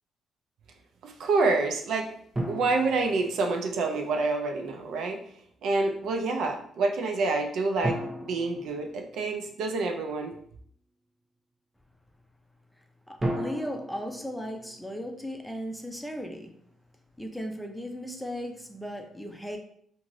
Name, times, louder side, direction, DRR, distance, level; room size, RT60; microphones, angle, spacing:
voice 1, 1.0-2.1 2.5-5.2 5.6-10.3, right 3 dB, 75° right, 4 dB, 0.4 m, -27 dB
sound 1, 2.3-4.0 7.8-9.7 13.2-15.5, right 1 dB, 20° right, 0.8 m, -35 dB
voice 2, 13.1-16.5 17.2-19.6, equal, 5° left, 3 dB, 0.5 m, -36 dB
2.6 x 2.4 x 3.1 m, 0.63 s
cardioid pair, 90°, 0 cm